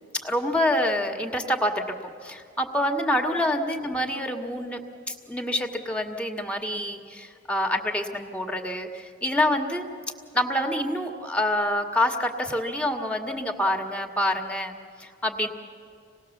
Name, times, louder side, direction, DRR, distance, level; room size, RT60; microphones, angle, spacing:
voice 1, 0.2-2.0 2.2-4.8 5.1-9.9 10.3-15.5, left 1 dB, 5° left, 4 dB, 1.7 m, -27 dB
26.5 x 19.0 x 7.2 m, 2.3 s
head